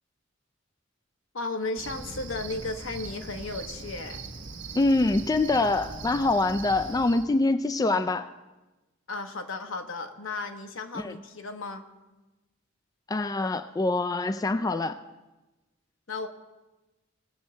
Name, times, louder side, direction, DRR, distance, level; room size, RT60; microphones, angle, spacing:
voice 1, 1.3-4.2 9.1-11.8 16.1-16.3, left 3 dB, 80° left, 6 dB, 1.1 m, -34 dB
Cricket, 1.8-7.2, right 4 dB, 65° right, 1.1 m, -40 dB
voice 2, 4.8-8.3 10.9-11.1 13.1-15.0, left 2 dB, 20° left, 10 dB, 0.3 m, -25 dB
19.0 x 7.4 x 4.4 m, 1.1 s
head